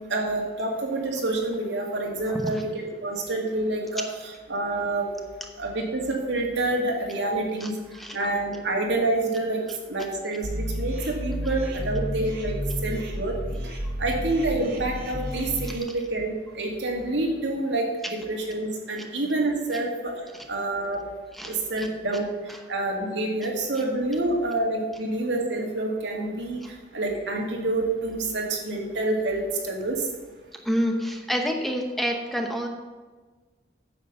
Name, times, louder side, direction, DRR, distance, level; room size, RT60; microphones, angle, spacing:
voice 1, 0.1-5.1 5.6-7.7 8.1-12.6 12.8-13.3 14.0-20.1 20.5-21.0 21.4-22.3 22.7-26.6 26.9-30.1, right 2 dB, 90° right, -1 dB, 2.3 m, -27 dB
voice 2, 2.3-2.6 7.6-8.2 21.3-21.9 26.6-26.7 30.6-32.7, equal, ahead, 3 dB, 0.9 m, -28 dB
sound 1, 10.4-15.8, equal, 60° right, 1.7 m, -31 dB
9.1 x 7.3 x 5.4 m, 1.4 s
head